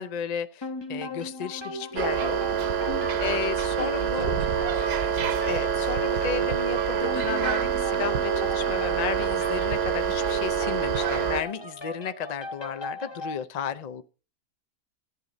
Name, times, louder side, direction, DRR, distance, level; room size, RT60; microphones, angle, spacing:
voice 1, 0.0-2.6 3.2-4.3 5.4-14.0, left 8 dB, 70° left, 12 dB, 0.3 m, -33 dB
sound 1, 0.6-13.4, equal, 25° left, 0.7 m, -37 dB
sound 2, 2.0-11.4, right 8 dB, 50° right, 0.9 m, -26 dB
voice 2, 2.9-3.4 3.8-4.2 4.5-5.2, left 5 dB, 45° left, 10 dB, 1.2 m, -42 dB
14.0 x 9.4 x 3.9 m, 0.34 s
omnidirectional pair, 1.5 m